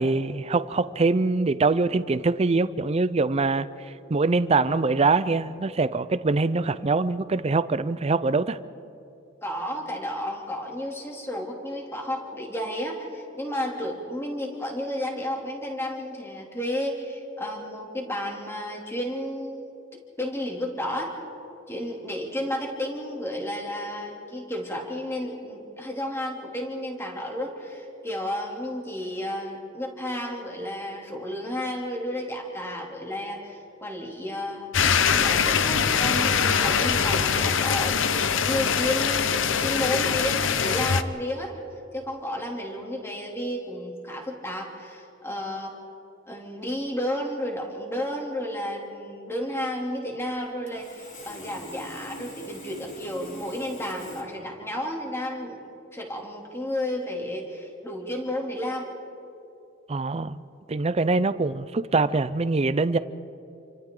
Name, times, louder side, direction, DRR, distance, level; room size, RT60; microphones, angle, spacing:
voice 1, 0.0-3.7 4.1-8.6 59.9-60.4 60.7-63.0, right 3 dB, 30° right, 14 dB, 0.5 m, -23 dB
voice 2, 9.4-19.7 20.2-21.1 21.7-34.7 35.1-41.5 41.9-45.8 46.3-58.9, left 1 dB, 15° left, 0 dB, 2.9 m, -32 dB
sound 1, 34.7-41.0, left 6 dB, 65° left, 0.8 m, -23 dB
Sawing, 50.7-54.2, left 1 dB, 40° left, 3.1 m, -43 dB
29.0 x 25.0 x 3.8 m, 2.8 s
head